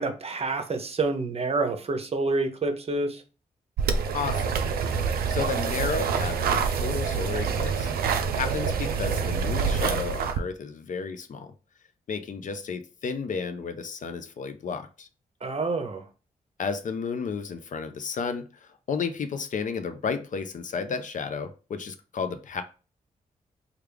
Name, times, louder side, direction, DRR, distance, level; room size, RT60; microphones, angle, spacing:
voice 1, 0.0-3.2 15.4-16.1, right 3 dB, 40° right, 0.7 m, -28 dB
sound 1, 3.8-10.4, right 6 dB, 80° right, 0.4 m, -26 dB
voice 2, 4.1-4.6 5.3-7.9 8.3-11.5 12.1-15.1 16.6-18.5 18.9-22.6, left 5 dB, 55° left, 0.5 m, -32 dB
3.3 x 2.4 x 3.4 m
supercardioid pair, 50°, 15 cm